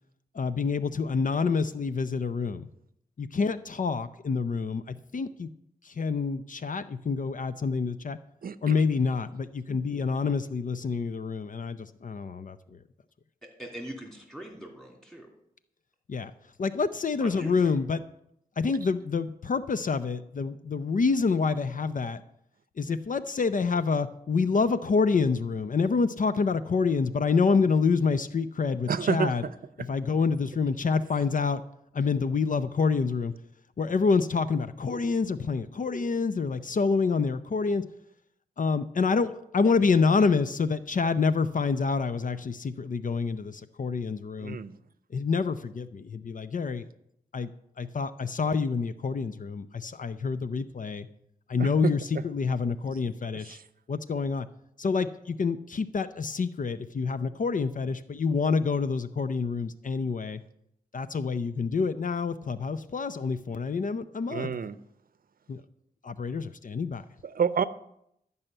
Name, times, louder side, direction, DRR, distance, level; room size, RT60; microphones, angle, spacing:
voice 1, 0.3-2.7 3.2-5.5 5.8-8.2 8.6-12.8 16.1-16.3 16.6-18.0 18.6-22.2 22.8-29.4 29.8-31.6 31.9-33.3 33.8-37.8 38.6-44.6 45.1-46.9 47.3-47.5 47.8-51.1 51.5-53.6 53.9-54.5 54.8-60.4 60.9-64.5 65.5-65.6 66.0-67.0, left 4 dB, 55° left, 12 dB, 0.6 m, -27 dB
voice 2, 8.4-8.7 28.9-29.5 44.4-44.7 51.6-51.9 53.5-53.6 64.3-64.8 67.2-67.6, right 6 dB, 65° right, 13 dB, 0.6 m, -28 dB
voice 3, 13.6-15.3 17.2-17.8, right 1 dB, 5° left, 1 dB, 2.7 m, -41 dB
12.0 x 5.6 x 8.9 m, 0.75 s
wide cardioid pair, 100°, 16 cm